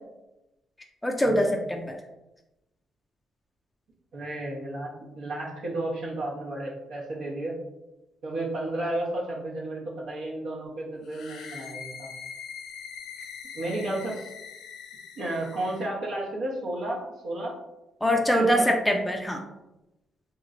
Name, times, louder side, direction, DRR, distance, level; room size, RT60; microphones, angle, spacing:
voice 1, 1.0-2.0 18.0-19.4, equal, 5° left, 1 dB, 0.3 m, -23 dB
voice 2, 4.1-7.6 8.2-12.1 13.5-14.3 15.2-17.5 18.1-18.7, right 1 dB, 70° right, -3 dB, 0.9 m, -33 dB
sound 1, 11.0-15.9, left 6 dB, 75° left, 0.5 m, -42 dB
3.0 x 2.9 x 2.5 m, 0.96 s
cardioid pair, 115°, 0 cm